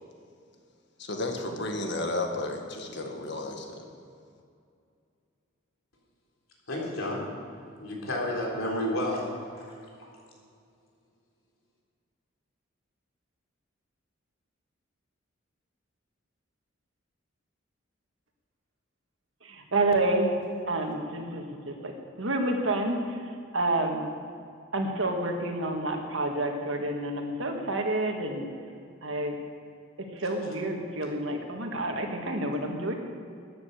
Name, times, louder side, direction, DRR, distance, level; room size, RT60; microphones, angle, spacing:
voice 1, 1.0-3.8, left 2 dB, 55° left, 3 dB, 1.7 m, -33 dB
voice 2, 6.7-7.2 7.8-9.3 9.6-9.7, left 1 dB, 90° left, -2 dB, 3.7 m, -30 dB
voice 3, 19.4-20.3 20.7-23.2 23.5-24.1 24.7-28.5 29.0-29.3 30.0-33.0, right 2 dB, 70° right, 3 dB, 1.8 m, -29 dB
13.5 x 10.0 x 6.6 m, 2.4 s
head